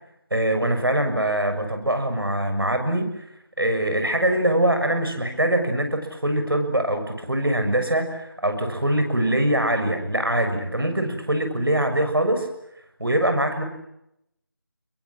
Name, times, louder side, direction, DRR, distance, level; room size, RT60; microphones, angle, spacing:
voice 1, 0.3-3.2 3.6-12.5 13.0-13.6, right 1 dB, 75° right, 6 dB, 6.8 m, -23 dB
29.5 x 22.0 x 8.8 m, 0.81 s
figure-of-eight pair, 165°, 12 cm